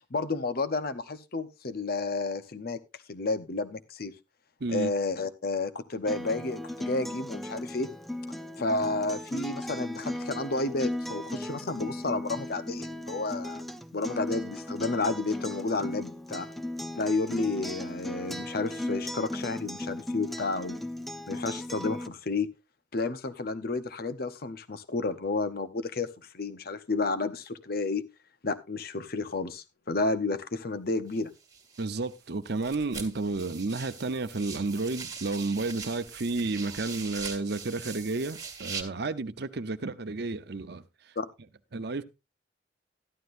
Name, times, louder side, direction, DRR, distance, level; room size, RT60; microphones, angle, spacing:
voice 1, 0.1-2.8 3.1-4.1 4.7-7.9 8.6-16.5 17.0-20.8 21.3-22.5 22.9-28.0 28.4-31.3 41.2-41.3, left 3 dB, 55° left, 0.9 m, -31 dB
voice 2, 4.6-4.9 31.8-40.8 41.7-42.0, right 3 dB, 65° right, 0.8 m, -31 dB
Acoustic guitar, 6.1-22.1, left 1 dB, ahead, 0.7 m, -37 dB
sound 1, 31.1-32.2 32.5-38.8, right 5 dB, 20° right, 1.9 m, -42 dB
13.5 x 11.5 x 2.6 m
head